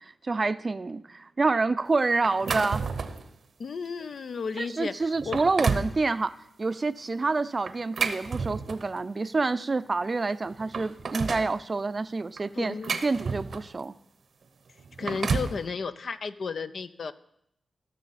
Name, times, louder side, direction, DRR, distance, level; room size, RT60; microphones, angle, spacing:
voice 1, 0.0-2.9 4.6-12.7 13.0-13.9, right 3 dB, 45° right, 15 dB, 0.4 m, -28 dB
sound 1, 2.2-3.3 3.8-4.0 4.6-4.7 5.1-6.0 7.7-9.0 10.0-10.1 10.5-11.5 12.4-13.8 14.8-15.6, right 5 dB, 70° right, 0.8 m, -31 dB
voice 2, 3.6-5.4 12.5-13.0 15.0-17.1, left 5 dB, 70° left, 12 dB, 0.5 m, -33 dB
16.5 x 6.3 x 4.1 m, 0.76 s
cardioid pair, 50°, 0 cm